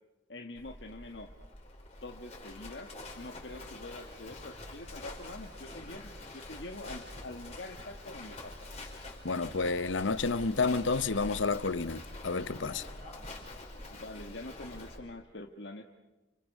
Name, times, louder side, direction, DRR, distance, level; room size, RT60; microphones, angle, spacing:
voice 1, 0.3-1.3 2.0-2.9 3.2-8.7 13.9-15.8, left 2 dB, 65° left, 1.5 m, -45 dB
Livestock farm animals working animals, 0.6-15.0, left 2 dB, 35° left, 5.1 m, -46 dB
voice 2, 9.2-12.8, left 4 dB, 85° left, 0.9 m, -30 dB
30.0 x 27.0 x 6.5 m
head